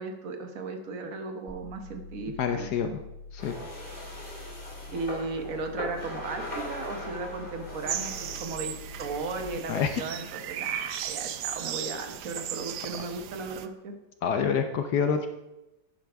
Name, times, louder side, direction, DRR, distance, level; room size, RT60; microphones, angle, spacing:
voice 1, 0.0-2.9 4.9-14.0, right 3 dB, 55° right, 5 dB, 1.4 m, -36 dB
sound 1, 1.5-9.5, left 3 dB, 20° right, 2.2 m, -45 dB
voice 2, 2.4-2.9 3.3-3.5 9.7-10.0 14.2-15.3, left 7 dB, 70° left, 7 dB, 1.2 m, -27 dB
sound 2, 3.4-8.4, equal, 30° left, 2.5 m, -40 dB
sound 3, 7.9-13.7, right 10 dB, 75° right, 1.1 m, -36 dB
12.0 x 8.7 x 3.4 m, 0.95 s
omnidirectional pair, 1.9 m